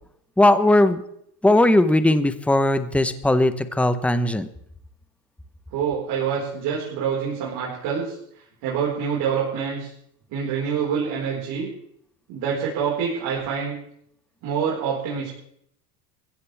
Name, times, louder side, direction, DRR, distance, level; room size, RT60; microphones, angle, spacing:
voice 1, 0.4-1.0 1.4-4.5, left 1 dB, 5° left, 11 dB, 0.9 m, -18 dB
voice 2, 5.7-8.1 8.6-9.9 10.3-11.7 12.3-13.8 14.4-15.3, right 7 dB, 55° right, -5 dB, 4.9 m, -26 dB
21.5 x 15.5 x 3.5 m, 0.71 s
supercardioid pair, 110°, 45 cm